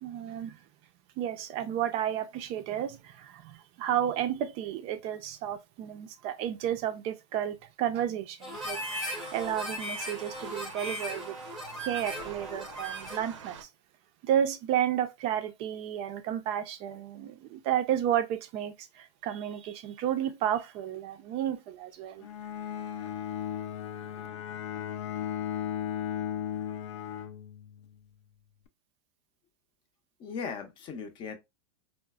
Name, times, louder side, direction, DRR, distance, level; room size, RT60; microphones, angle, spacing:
voice 1, 0.0-0.6 1.2-11.3 11.8-13.7 14.2-22.3, right 10 dB, 40° right, 0.4 m, -32 dB
Harmonica, 8.4-13.3, equal, ahead, 0.7 m, -38 dB
sound 1, 8.5-13.6, right 7 dB, 85° right, 0.6 m, -46 dB
Bowed string instrument, 22.2-28.0, left 9 dB, 75° left, 0.4 m, -36 dB
voice 2, 30.2-31.4, left 6 dB, 35° left, 0.6 m, -38 dB
3.8 x 2.0 x 2.2 m
hypercardioid pair, 125°, 15 cm